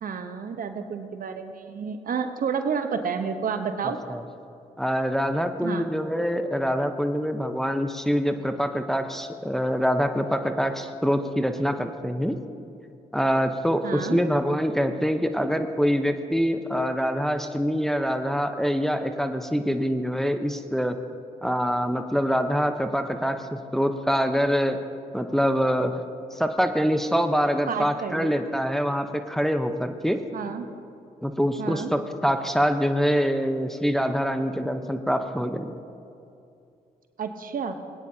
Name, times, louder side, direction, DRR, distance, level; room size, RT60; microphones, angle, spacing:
voice 1, 0.0-4.0 5.6-5.9 13.8-14.2 27.7-28.3 30.3-30.7 31.6-31.9 37.2-37.8, right 6 dB, 65° right, 7 dB, 0.9 m, -30 dB
voice 2, 4.8-12.4 13.1-21.0 21.4-24.8 25.1-25.9 26.3-30.2 31.2-35.7, equal, ahead, 7 dB, 0.8 m, -25 dB
20.5 x 9.6 x 2.8 m, 2.6 s
supercardioid pair, 45°, 16 cm